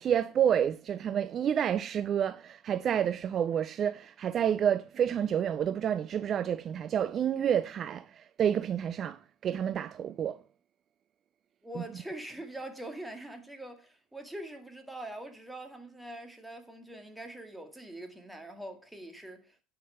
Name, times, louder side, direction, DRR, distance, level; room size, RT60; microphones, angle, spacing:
voice 1, 0.0-10.4, right 9 dB, 45° right, 0.4 m, -29 dB
voice 2, 11.6-19.6, right 1 dB, 5° right, 2.0 m, -43 dB
9.2 x 5.9 x 5.5 m
hypercardioid pair, 80°, 0 cm